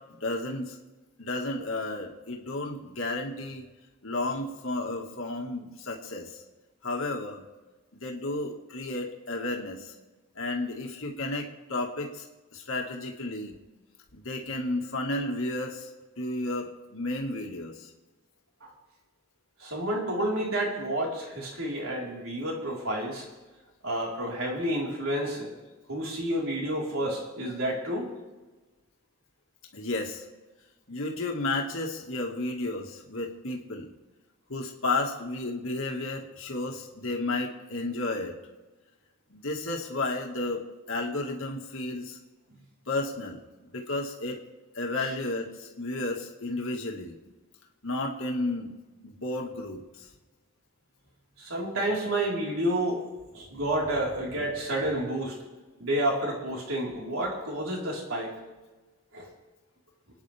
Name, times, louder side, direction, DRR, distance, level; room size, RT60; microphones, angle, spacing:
voice 1, 0.1-0.8 1.2-3.6 4.0-6.3 6.8-7.4 8.0-9.9 10.4-12.2 12.5-13.6 14.1-15.9 16.2-17.9 29.7-30.2 30.9-33.9 34.5-38.4 39.3-42.2 42.9-44.4 44.8-47.2 47.8-48.7 49.0-49.8, left 2 dB, 70° left, 1 dB, 1.8 m, -32 dB
voice 2, 19.6-23.3 23.8-25.5 25.9-28.1 45.0-45.1 51.4-55.3 55.8-58.4 59.1-59.3, right 1 dB, 75° right, -3 dB, 4.2 m, -30 dB
28.5 x 9.8 x 3.5 m, 1.2 s
head